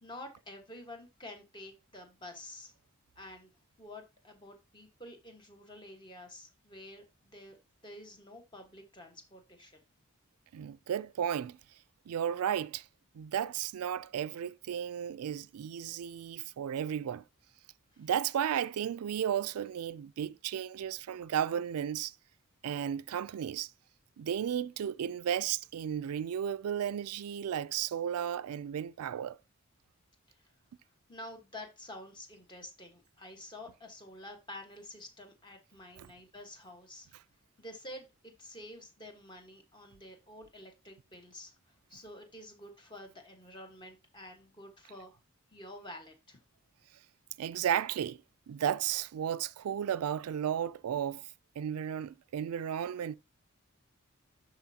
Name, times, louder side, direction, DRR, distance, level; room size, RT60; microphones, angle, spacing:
voice 1, 0.0-2.7 3.2-3.5 3.8-7.6 7.8-9.8 17.9-18.1 30.3-30.5 31.1-37.1 37.6-45.2 45.5-46.4, left 1 dB, 20° left, 1.3 m, -49 dB
voice 2, 10.5-11.6 12.1-12.9 13.1-17.2 18.0-22.1 22.6-23.7 24.2-29.4 36.0-36.1 47.4-48.2 48.5-53.2, right 9 dB, 90° right, 0.3 m, -34 dB
12.0 x 4.2 x 2.8 m
head